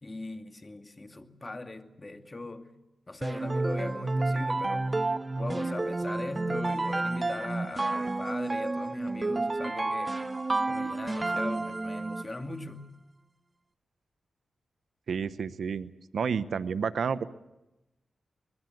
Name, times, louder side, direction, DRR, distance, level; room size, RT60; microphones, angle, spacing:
voice 1, 0.0-2.7 3.1-4.9 5.4-10.2 10.7-12.8, left 2 dB, 30° left, 2.3 m, -39 dB
sound 1, 3.2-12.4, right 2 dB, 30° right, 0.8 m, -30 dB
voice 2, 15.1-17.2, right 6 dB, 75° right, 0.9 m, -30 dB
24.5 x 21.0 x 7.9 m
cardioid pair, 55°, 0 cm